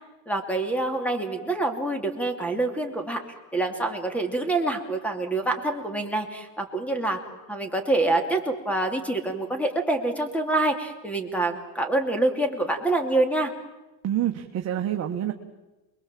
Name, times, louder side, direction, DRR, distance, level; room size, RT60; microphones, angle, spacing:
voice 1, 0.3-3.2 3.5-7.2 7.5-13.5, right 2 dB, 5° left, 6 dB, 2.8 m, -26 dB
voice 2, 14.0-15.3, right 11 dB, 45° right, 3 dB, 1.5 m, -27 dB
28.5 x 21.5 x 7.6 m, 1.1 s
cardioid pair, 140°, 35 cm